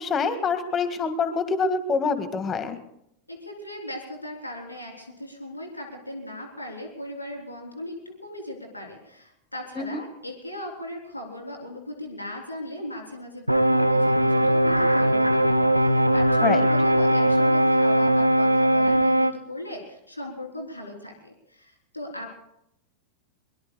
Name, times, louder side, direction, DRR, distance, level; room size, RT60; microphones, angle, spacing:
voice 1, 0.0-2.8 9.8-10.0 16.4-16.7, left 5 dB, 25° left, 9 dB, 1.8 m, -26 dB
voice 2, 3.3-15.3 15.7-22.4, left 1 dB, 85° left, 1 dB, 3.6 m, -38 dB
sound 1, 13.5-19.3, right 1 dB, 90° right, 0.8 m, -20 dB
23.5 x 22.5 x 2.3 m, 0.78 s
figure-of-eight pair, 90°, 0 cm